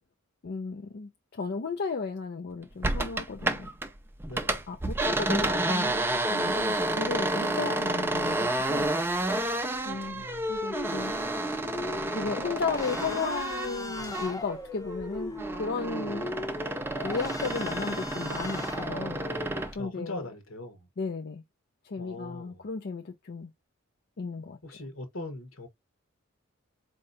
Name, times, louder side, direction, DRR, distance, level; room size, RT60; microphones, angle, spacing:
voice 1, 0.4-3.7 4.7-8.9 9.8-11.1 12.1-16.3 17.0-19.2 19.7-20.3 21.0-21.4 21.8-23.5 24.2-24.6, left 4 dB, 50° left, 0.5 m, -34 dB
sound 1, 2.8-3.9 4.2-14.6 14.9-19.7, right 1 dB, 10° right, 0.5 m, -30 dB
voice 2, 4.2-4.6 9.9-10.7 19.8-20.9 22.0-22.7 24.6-25.7, left 1 dB, 65° left, 1.2 m, -41 dB
sound 2, 10.4-19.6, left 1 dB, 15° left, 0.8 m, -39 dB
4.4 x 2.8 x 2.6 m
head